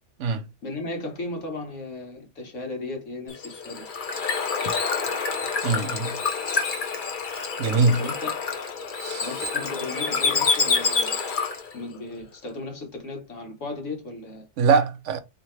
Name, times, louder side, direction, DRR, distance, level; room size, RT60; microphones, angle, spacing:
voice 1, 0.6-3.9 8.0-8.3 9.2-11.2 11.7-14.5, left 2 dB, 85° left, 1.7 m, -35 dB
Bird / Water, 3.3-11.7, left 5 dB, 45° left, 1.0 m, -27 dB
voice 2, 5.6-6.2 7.6-8.0 9.0-9.3 14.6-15.2, right 4 dB, 80° right, 1.0 m, -22 dB
4.0 x 2.9 x 3.2 m
omnidirectional pair, 1.2 m